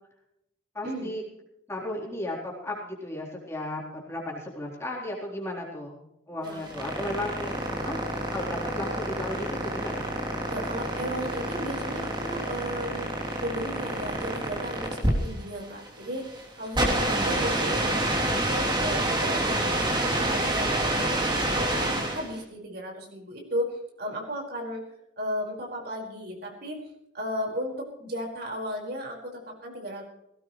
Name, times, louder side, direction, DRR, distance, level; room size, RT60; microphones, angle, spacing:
voice 1, 0.7-1.2 1.7-6.0 6.3-8.0 8.3-10.1, left 1 dB, 15° left, -2 dB, 3.9 m, -35 dB
sound 1, 6.4-22.4, right 1 dB, 25° right, 3.2 m, -28 dB
voice 2, 10.5-13.1 13.4-21.1 21.4-24.8 25.2-26.8 27.1-30.0, equal, 55° right, 0 dB, 5.1 m, -35 dB
19.0 x 17.0 x 3.2 m, 0.82 s
head